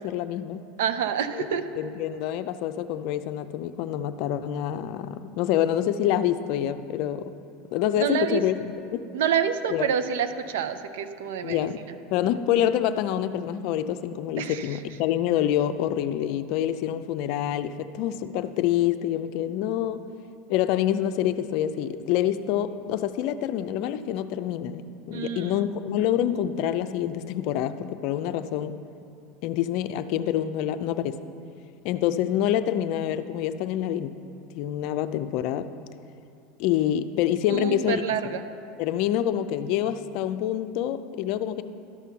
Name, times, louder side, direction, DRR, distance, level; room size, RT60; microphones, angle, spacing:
voice 1, 0.0-0.6 1.3-7.3 7.7-9.1 9.7-9.9 11.4-20.0 20.5-28.8 29.4-31.2 31.8-34.2 34.5-35.7 36.6-38.4 38.8-41.6, left 11 dB, 60° left, 11 dB, 0.5 m, -27 dB
voice 2, 0.8-1.6 8.0-8.4 9.1-11.7 14.4-14.6 25.1-25.6 37.5-38.5, right 8 dB, 80° right, 10 dB, 0.6 m, -27 dB
12.5 x 6.0 x 5.7 m, 2.5 s
supercardioid pair, 105°, 0 cm